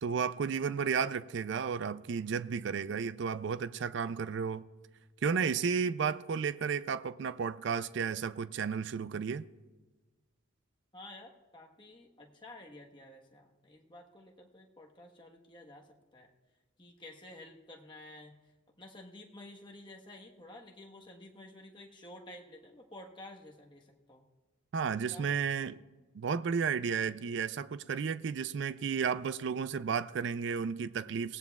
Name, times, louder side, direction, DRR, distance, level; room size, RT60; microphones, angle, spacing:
voice 1, 0.0-4.6 5.2-9.4 24.7-25.8 26.1-31.4, right 6 dB, 60° right, 0.3 m, -33 dB
voice 2, 10.9-16.3 16.8-18.3 18.8-24.2 25.1-25.7, left 1 dB, 25° left, 1.2 m, -52 dB
23.0 x 17.0 x 2.3 m
head